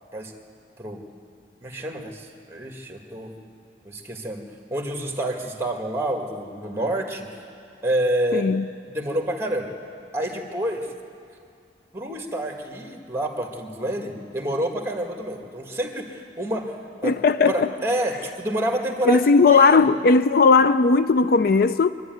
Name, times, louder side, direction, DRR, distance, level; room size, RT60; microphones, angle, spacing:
voice 1, 1.6-3.3 3.8-4.4 4.7-7.3 7.8-8.5 8.9-9.7 10.1-10.9 11.9-16.8 17.0-17.2 17.5-19.9, right 1 dB, 15° right, 1.8 m, -28 dB
voice 2, 8.3-8.7 17.0-17.7 19.1-21.9, left 4 dB, 55° left, 0.4 m, -17 dB
24.0 x 12.0 x 9.2 m
head